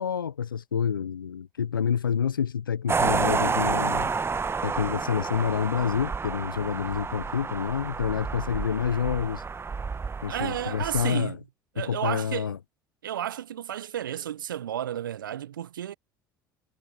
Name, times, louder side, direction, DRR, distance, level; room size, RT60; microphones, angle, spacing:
voice 1, 0.0-4.1 4.6-9.4 10.2-11.4 11.8-12.6, left 7 dB, 85° left, 0.4 m, -28 dB
sound 1, 2.9-11.1, right 5 dB, 20° right, 1.0 m, -30 dB
voice 2, 10.3-11.4 11.7-12.5 13.0-15.9, right 10 dB, 80° right, 1.0 m, -32 dB
figure-of-eight pair, 60°, 11 cm